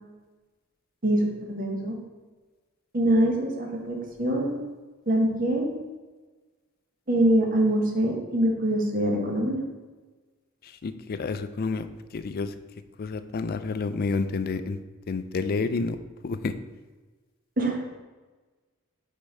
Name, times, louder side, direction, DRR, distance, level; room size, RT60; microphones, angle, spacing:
voice 1, 1.0-2.0 2.9-4.6 5.1-5.7 7.1-9.6 17.6-17.8, right 1 dB, 40° right, 1 dB, 1.1 m, -24 dB
voice 2, 10.8-11.9 12.1-12.5 13.0-14.8 15.1-16.0 16.2-16.5, left 4 dB, 45° left, 11 dB, 0.4 m, -29 dB
5.1 x 4.6 x 5.3 m, 1.3 s
head